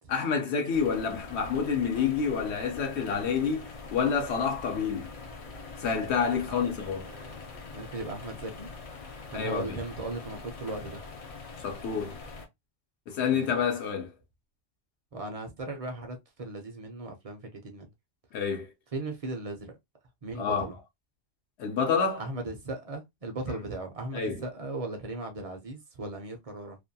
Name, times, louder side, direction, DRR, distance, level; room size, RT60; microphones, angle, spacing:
voice 1, 0.1-5.1 5.8-7.1 9.3-9.8 11.6-12.2 13.1-14.1 18.3-18.7 20.4-20.7 21.6-22.2 24.1-24.4, left 6 dB, 75° left, 0.9 m, -28 dB
sound 1, 0.7-12.5, left 3 dB, 50° left, 0.4 m, -44 dB
voice 2, 7.0-7.4 7.7-8.7 9.3-11.0 13.3-13.5 15.1-17.9 18.9-19.7 20.2-20.8 22.2-26.8, right 2 dB, 45° right, 0.5 m, -37 dB
2.5 x 2.2 x 2.6 m
omnidirectional pair, 1.1 m